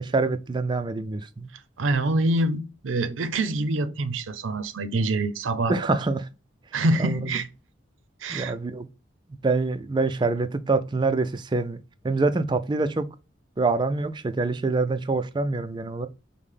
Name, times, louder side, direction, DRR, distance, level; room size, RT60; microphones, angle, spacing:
voice 1, 0.0-1.5 5.7-6.3 7.0-7.2 8.3-8.9 9.4-11.8 12.0-13.1 13.6-16.1, right 3 dB, 25° right, 0.3 m, -25 dB
voice 2, 1.8-5.8 6.7-7.5 8.2-8.5, right 2 dB, 90° right, 0.5 m, -25 dB
5.4 x 2.1 x 3.2 m
head